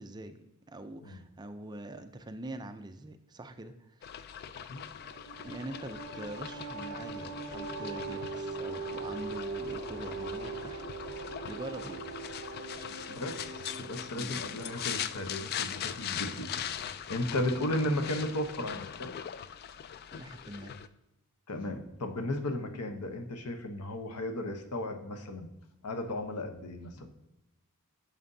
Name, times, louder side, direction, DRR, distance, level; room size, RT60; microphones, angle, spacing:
voice 1, 0.0-4.2 5.4-10.8 11.4-12.2 12.7-13.2 14.1-14.4 20.1-20.8, right 1 dB, 20° right, 8 dB, 0.4 m, -44 dB
sound 1, 4.0-20.9, left 9 dB, 45° left, 0.3 m, -41 dB
voice 2, 4.4-4.8 13.1-19.1 21.5-25.5 25.8-27.1, left 1 dB, 90° left, 7 dB, 0.9 m, -35 dB
sound 2, 5.0-15.3, right 4 dB, 50° right, 1.2 m, -41 dB
9.2 x 6.7 x 2.7 m, 0.95 s
head